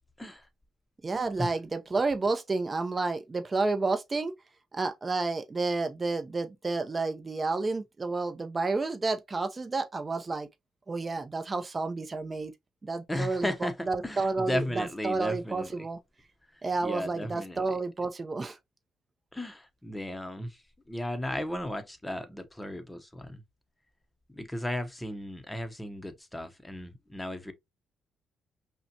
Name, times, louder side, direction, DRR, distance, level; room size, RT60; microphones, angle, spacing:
voice 1, 1.0-4.3 4.7-10.5 10.9-12.5 12.8-16.0 16.6-18.6, right 3 dB, 30° right, 0.6 m, -30 dB
voice 2, 13.1-15.9 16.8-17.6 19.3-20.6 20.9-23.4 24.3-27.5, left 1 dB, 10° left, 0.8 m, -35 dB
5.5 x 2.2 x 2.7 m
cardioid pair, 90°, 0 cm